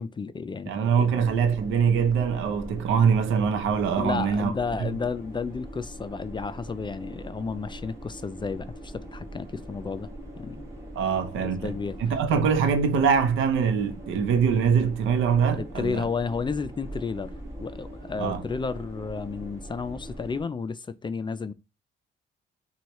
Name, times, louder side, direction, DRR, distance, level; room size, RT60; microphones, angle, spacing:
voice 1, 0.0-0.7 1.0-1.2 4.0-10.1 10.4-10.6 11.4-12.0 15.5-17.3 17.6-21.5, left 5 dB, 25° left, 0.3 m, -32 dB
voice 2, 0.7-4.5 4.8-4.9 10.9-11.7 12.0-16.0 18.2-18.4, right 6 dB, 80° right, 0.7 m, -23 dB
sound 1, 1.2-20.4, right 1 dB, 15° right, 1.6 m, -41 dB
6.1 x 2.3 x 3.0 m
cardioid pair, 90°, 20 cm